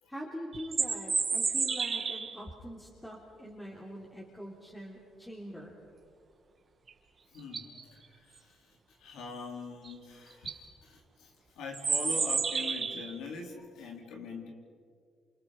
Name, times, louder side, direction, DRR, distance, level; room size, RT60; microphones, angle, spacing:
voice 1, 0.1-5.8, equal, 10° left, -3 dB, 3.7 m, -44 dB
sound 1, 0.5-2.4 6.9-7.0 7.4-7.8 9.8-9.9 10.3-10.6 11.7-13.1, right 5 dB, 40° right, 2.7 m, -31 dB
voice 2, 7.3-14.5, left 4 dB, 85° left, 1 dB, 4.5 m, -43 dB
29.5 x 28.0 x 5.6 m, 2.3 s
cardioid pair, 90°, 0 cm